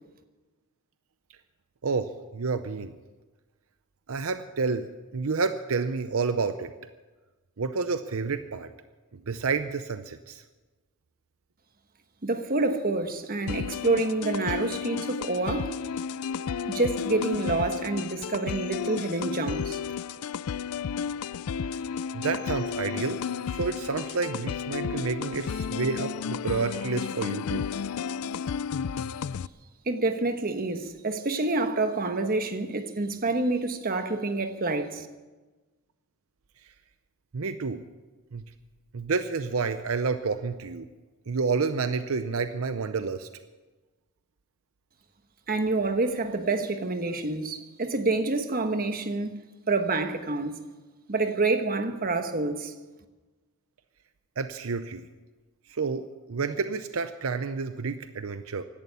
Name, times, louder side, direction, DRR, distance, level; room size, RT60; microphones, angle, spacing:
voice 1, 1.8-2.9 4.1-4.9 5.1-6.7 7.6-8.7 9.1-10.4 22.1-23.2 23.5-27.7 37.3-37.8 38.3-38.4 38.9-40.9 41.3-43.3 54.4-55.1 55.7-58.6, right 4 dB, 75° right, 0.6 m, -29 dB
voice 2, 12.2-15.8 16.7-19.8 29.9-35.1 45.5-50.7 51.1-52.7, right 3 dB, 40° right, 1.2 m, -27 dB
sound 1, 13.5-29.5, left 7 dB, 85° left, 0.4 m, -32 dB
16.5 x 11.5 x 6.9 m
head